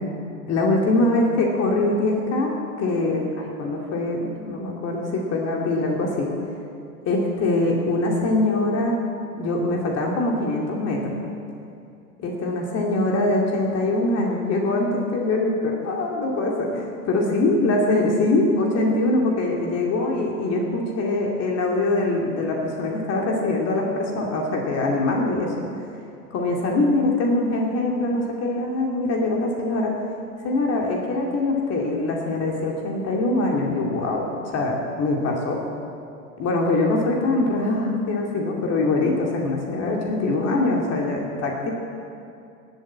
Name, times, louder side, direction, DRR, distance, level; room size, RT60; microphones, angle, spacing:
voice 1, 0.5-6.3 7.0-9.0 9.4-11.2 12.2-25.5 26.3-30.0 30.4-35.6 36.4-41.7, left 2 dB, 35° left, -1 dB, 2.5 m, -23 dB
20.0 x 8.1 x 8.3 m, 2.5 s
figure-of-eight pair, 85°, 43 cm